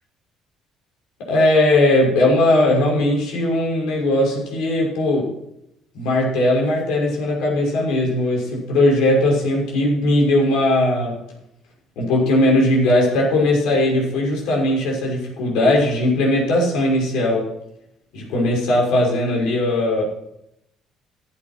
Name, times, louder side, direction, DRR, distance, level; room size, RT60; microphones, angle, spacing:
voice 1, 1.3-5.3 5.9-11.2 12.0-17.5 18.1-20.0, left 1 dB, 85° left, -2 dB, 6.1 m, -18 dB
15.0 x 8.7 x 6.0 m, 0.82 s
cardioid pair, 125°, 0 cm